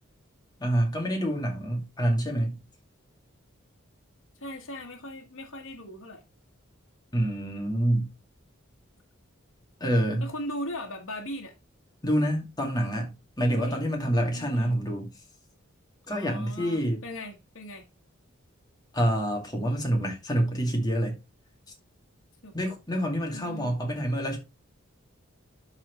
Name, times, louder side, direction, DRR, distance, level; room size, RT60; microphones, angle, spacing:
voice 1, 0.6-2.6 7.1-8.1 9.8-10.3 12.0-15.1 16.1-17.0 18.9-21.2 22.5-24.4, equal, 20° left, 2.2 m, -27 dB
voice 2, 4.4-6.2 10.2-11.5 13.6-13.8 14.3-14.8 16.1-17.8 22.4-22.5 23.3-23.7, equal, 75° left, 1.6 m, -38 dB
12.0 x 4.4 x 3.1 m
head